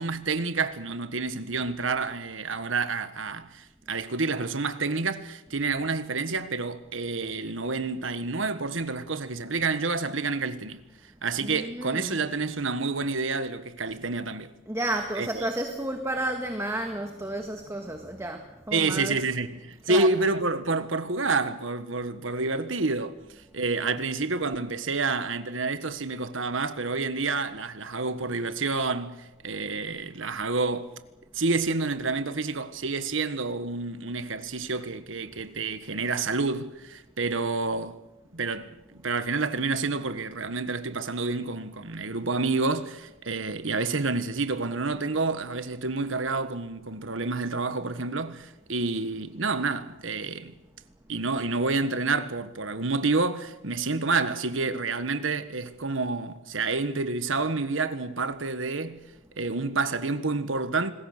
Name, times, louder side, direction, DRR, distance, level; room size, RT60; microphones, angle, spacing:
voice 1, 0.0-10.8 11.2-14.5 15.2-15.5 18.7-23.2 23.5-30.9 31.3-38.0 38.3-50.5 51.1-59.0 59.4-60.9, right 3 dB, 75° right, 1.5 m, -29 dB
voice 2, 11.4-12.2 14.7-19.2 19.9-20.1, right 1 dB, 15° right, 1.6 m, -32 dB
27.5 x 20.5 x 6.7 m
head